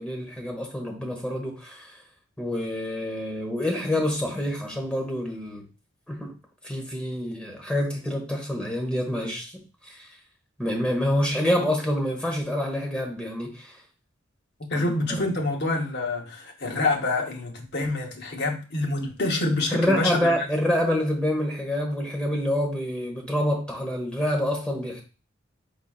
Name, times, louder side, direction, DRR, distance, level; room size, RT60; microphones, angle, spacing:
voice 1, 0.0-1.9 2.4-5.7 6.1-6.3 6.6-10.1 10.6-13.8 14.7-15.3 19.7-25.0, left 1 dB, 5° left, 1 dB, 1.0 m, -27 dB
voice 2, 14.6-20.3, left 2 dB, 55° left, 1 dB, 1.0 m, -27 dB
4.6 x 4.0 x 2.3 m, 0.33 s
head